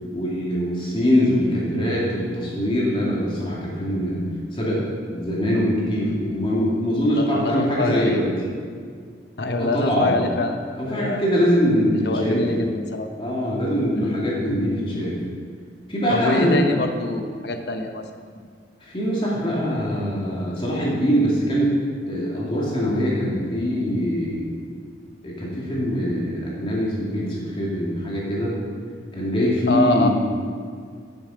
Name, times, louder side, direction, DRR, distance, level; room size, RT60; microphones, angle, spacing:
voice 1, 0.1-4.2 4.5-4.8 5.1-8.3 9.6-10.2 10.7-12.4 13.2-15.1 15.9-16.6 18.8-21.8 22.1-24.5 25.2-28.6 29.1-30.1, equal, 30° left, -5 dB, 2.4 m, -23 dB
voice 2, 7.2-8.2 9.4-11.2 12.0-13.1 13.9-14.2 16.1-18.0 29.7-30.1, left 2 dB, 60° left, 5 dB, 0.8 m, -25 dB
11.0 x 7.0 x 5.0 m, 2.1 s
head